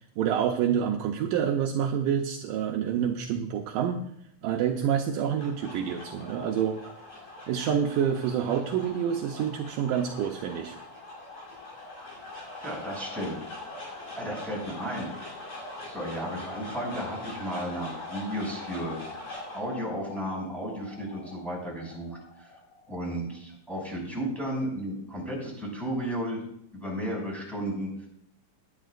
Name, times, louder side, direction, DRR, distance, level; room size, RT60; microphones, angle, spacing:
voice 1, 0.2-4.1 4.4-6.8 7.5-10.8 12.7-12.8, right 8 dB, 75° right, 2 dB, 2.3 m, -27 dB
sound 1, 5.0-23.4, left 2 dB, 65° left, 8.1 m, -42 dB
voice 2, 12.6-13.4 14.2-15.2 15.9-19.0 19.5-22.5 22.9-26.4 26.7-28.1, equal, ahead, -4 dB, 5.7 m, -34 dB
19.5 x 11.0 x 2.5 m, 0.70 s
omnidirectional pair, 4.1 m